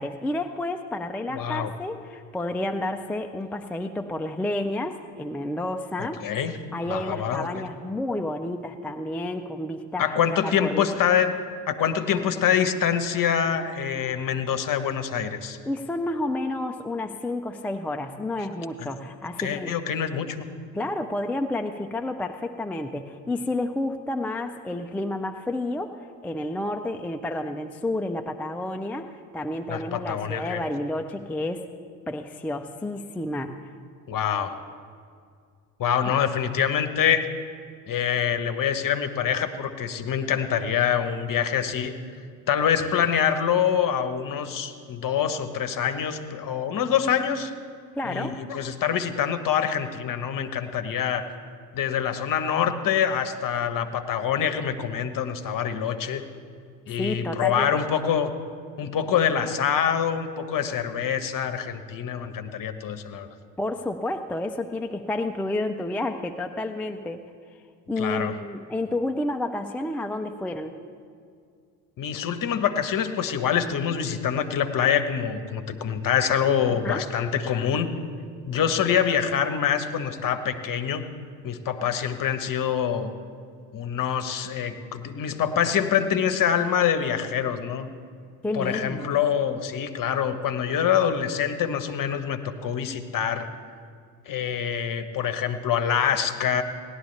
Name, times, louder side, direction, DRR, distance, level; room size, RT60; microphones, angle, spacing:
voice 1, 0.0-6.2 6.7-10.9 15.7-19.7 20.7-26.0 26.2-31.7 32.1-33.7 36.0-36.1 48.0-48.4 56.9-57.8 63.6-67.2 67.9-70.8 76.7-77.1 88.4-89.1, left 1 dB, 5° left, 6 dB, 0.3 m, -30 dB
voice 2, 1.3-1.7 6.0-6.6 6.9-7.6 10.0-11.4 11.7-15.6 18.8-18.9 19.4-20.5 29.7-30.6 34.1-34.5 35.8-37.3 37.9-41.9 42.5-47.5 48.0-51.3 51.7-56.2 56.9-58.3 58.8-63.3 68.0-68.3 72.0-77.9 78.5-81.0 81.4-83.1 83.7-87.9 88.5-93.5 94.3-96.6, left 8 dB, 40° left, 9 dB, 1.1 m, -25 dB
17.5 x 11.5 x 3.3 m, 2.2 s
hypercardioid pair, 60°, 50 cm